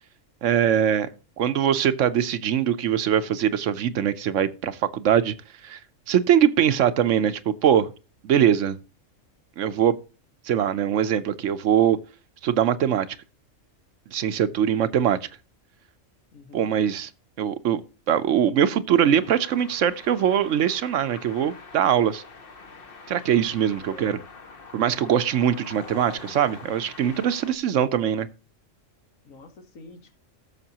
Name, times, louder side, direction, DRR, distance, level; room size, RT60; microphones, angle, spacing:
voice 1, 0.4-1.1 1.4-5.3 5.6-5.8 6.1-7.9 8.2-8.8 9.6-10.0 10.5-12.0 12.4-13.1 14.1-15.2 16.5-17.1 17.4-17.8 18.1-22.2 23.1-24.2 24.7-28.3, right 9 dB, 70° right, 1.0 m, -22 dB
voice 2, 16.3-16.7 23.9-24.1 29.2-30.2, left 2 dB, 85° left, 1.8 m, -47 dB
sound 1, 18.9-27.5, left 4 dB, 50° left, 1.1 m, -45 dB
16.0 x 6.6 x 2.8 m
omnidirectional pair, 1.3 m